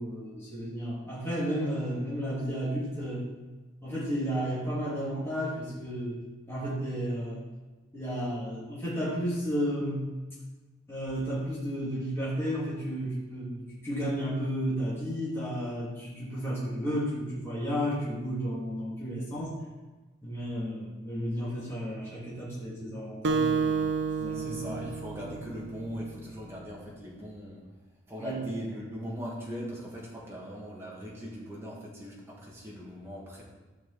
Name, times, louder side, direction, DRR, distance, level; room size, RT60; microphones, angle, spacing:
voice 1, 0.0-3.2 3.8-6.2 6.5-7.4 7.9-10.1 10.9-19.5 20.2-24.8 25.1-25.2 28.2-28.4, equal, 15° left, -8 dB, 3.1 m, -33 dB
Acoustic guitar, 23.2-26.0, right 5 dB, 65° right, 0.6 m, -30 dB
voice 2, 24.3-27.6 28.1-33.4, equal, 15° right, -5 dB, 2.2 m, -40 dB
12.5 x 6.1 x 4.3 m, 1.2 s
head